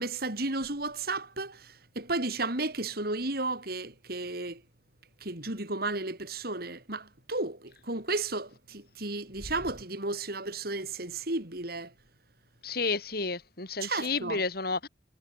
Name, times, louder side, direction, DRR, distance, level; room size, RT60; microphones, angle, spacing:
voice 1, 0.0-1.6 2.0-4.6 5.2-11.9 13.8-14.4, right 2 dB, 60° right, 5.8 m, -33 dB
voice 2, 12.6-14.9, left 4 dB, 60° left, 5.1 m, -31 dB
head